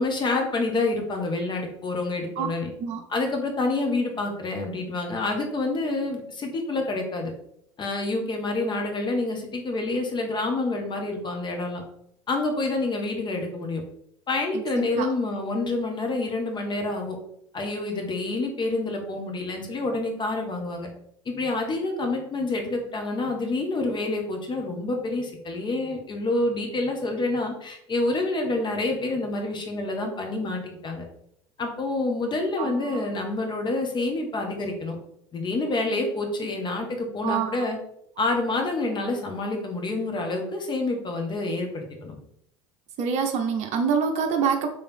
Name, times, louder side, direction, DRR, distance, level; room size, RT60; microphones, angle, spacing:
voice 1, 0.0-2.7 3.1-7.3 7.8-11.8 12.3-13.8 14.3-17.1 17.5-20.9 21.2-31.0 31.6-34.9 35.3-37.8 38.2-42.1, left 2 dB, 30° left, 3 dB, 1.3 m, -28 dB
voice 2, 14.5-15.1 32.6-33.1 37.2-37.7 43.0-44.7, right 6 dB, 45° right, 4 dB, 0.8 m, -26 dB
3.5 x 3.4 x 4.4 m, 0.72 s
hypercardioid pair, 75°, 16 cm